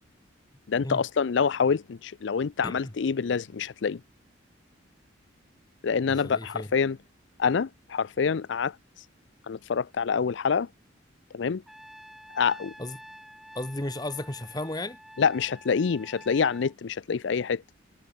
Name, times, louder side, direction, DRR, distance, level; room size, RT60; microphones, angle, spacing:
voice 1, 0.7-4.0 5.8-7.0 7.4-8.7 9.5-10.7 11.3-11.6 12.3-12.7 15.2-17.6, left 6 dB, 65° left, 0.4 m, -26 dB
voice 2, 6.1-6.7 12.8-13.0 13.5-15.0, left 1 dB, 20° left, 1.5 m, -34 dB
Trumpet, 11.7-16.7, equal, ahead, 4.0 m, -49 dB
head